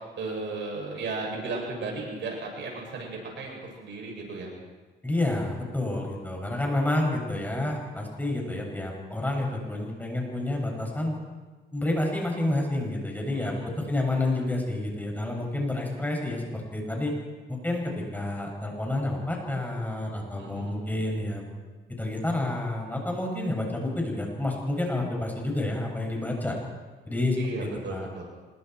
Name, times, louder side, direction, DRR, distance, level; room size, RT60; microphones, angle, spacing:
voice 1, 0.2-4.5 13.3-13.9 20.4-20.8 27.4-28.3, right 3 dB, 65° right, 0 dB, 7.9 m, -35 dB
voice 2, 5.0-11.2 11.7-17.1 17.5-21.5 22.0-26.6 27.1-28.1, left 1 dB, 10° left, 0 dB, 7.5 m, -29 dB
26.5 x 23.0 x 4.7 m, 1.3 s
cardioid pair, 90°, 20 cm